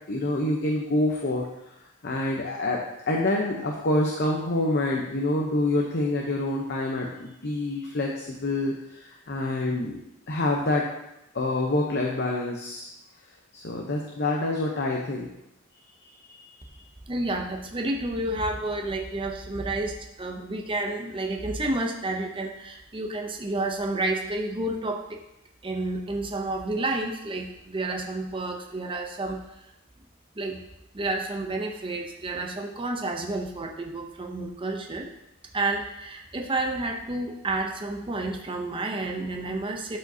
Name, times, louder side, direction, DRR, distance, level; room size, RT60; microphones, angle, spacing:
voice 1, 0.1-1.5 2.0-2.8 3.1-10.0 10.3-10.8 11.3-12.9 13.5-15.3, left 2 dB, 55° left, -1 dB, 0.8 m, -26 dB
voice 2, 17.1-25.2 25.6-29.4 30.4-30.6 30.9-35.1 35.5-40.0, right 2 dB, 25° right, 2 dB, 0.6 m, -30 dB
12.0 x 4.9 x 2.8 m, 0.87 s
head